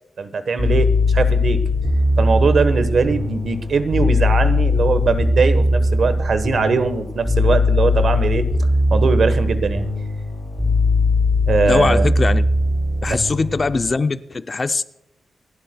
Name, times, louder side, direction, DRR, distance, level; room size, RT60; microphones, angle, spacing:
voice 1, 0.2-1.6 2.2-8.5 8.9-9.9 11.5-12.1, right 4 dB, 55° right, 11 dB, 1.1 m, -20 dB
sound 1, 0.6-13.9, left 2 dB, ahead, 4.3 m, -19 dB
voice 2, 11.7-12.4 13.0-14.8, left 3 dB, 30° left, 11 dB, 0.4 m, -21 dB
28.0 x 12.0 x 2.2 m, 0.86 s
wide cardioid pair, 150°, 0 cm